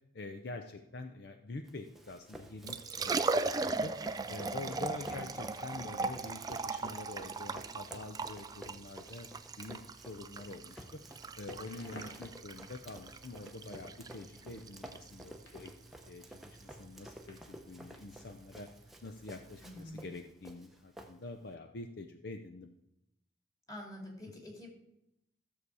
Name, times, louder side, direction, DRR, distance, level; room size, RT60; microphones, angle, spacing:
voice 1, 0.1-9.3 9.6-9.8 10.1-11.0 11.4-15.7 16.0-18.7 19.0-22.7, left 2 dB, 55° left, 6 dB, 0.6 m, -46 dB
Run, 1.6-21.5, right 1 dB, ahead, 0.8 m, -53 dB
Liquid, 2.5-19.8, right 3 dB, 20° right, 0.3 m, -39 dB
Crackle, 11.5-17.7, left 1 dB, 85° left, 2.4 m, -58 dB
voice 2, 19.6-20.1 23.7-24.7, left 1 dB, 20° left, 0 dB, 2.3 m, -47 dB
13.5 x 6.9 x 4.8 m, 0.85 s
head